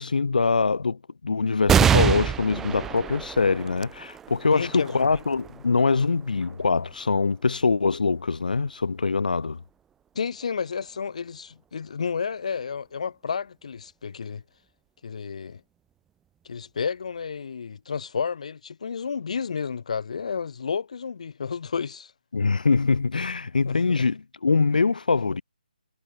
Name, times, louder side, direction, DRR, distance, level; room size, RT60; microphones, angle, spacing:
voice 1, 0.0-9.6 22.3-25.4, left 4 dB, 70° left, 5.0 m, -23 dB
sound 1, 1.7-8.6 9.2-9.3 10.4-11.0, right 8 dB, 5° right, 0.8 m, -27 dB
voice 2, 4.5-5.2 10.1-14.4 15.0-15.6 16.4-22.1 23.6-24.1, left 6 dB, 50° left, 4.8 m, -31 dB
hypercardioid pair, 165°, 5 cm